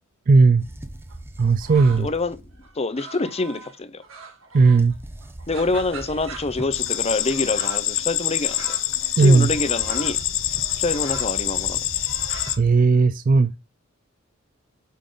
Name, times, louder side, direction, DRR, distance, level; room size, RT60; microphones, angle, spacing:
voice 1, 0.3-0.6 1.4-2.1 4.5-4.9 9.2-9.5 12.6-13.5, right 4 dB, 45° right, 0.4 m, -16 dB
sound 1, 0.6-2.7 4.8-7.0 9.1-12.8, right 1 dB, 10° right, 0.7 m, -39 dB
sound 2, 1.1-2.2 2.6-4.9 5.2-13.0, right 4 dB, 80° right, 1.9 m, -42 dB
voice 2, 2.0-2.5 2.7-4.0 5.5-8.8 9.2-10.2 10.8-11.8, left 3 dB, 30° left, 0.7 m, -26 dB
sound 3, 6.7-12.6, left 13 dB, 70° left, 0.8 m, -26 dB
8.4 x 5.6 x 3.9 m
head